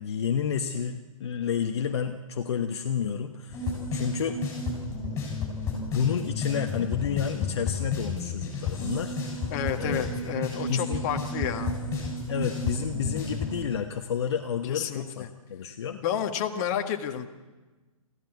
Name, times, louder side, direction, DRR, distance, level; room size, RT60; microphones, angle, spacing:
voice 1, 0.0-4.4 5.9-9.5 9.7-10.1 10.7-11.1 12.3-16.0, left 7 dB, 50° left, 5 dB, 1.2 m, -30 dB
sound 1, 3.5-13.6, left 3 dB, 15° left, 7.8 m, -32 dB
voice 2, 9.5-11.7 14.7-15.3 15.9-17.3, left 9 dB, 30° left, 5 dB, 1.7 m, -31 dB
24.0 x 15.5 x 8.2 m, 1.2 s
figure-of-eight pair, 130°, 18 cm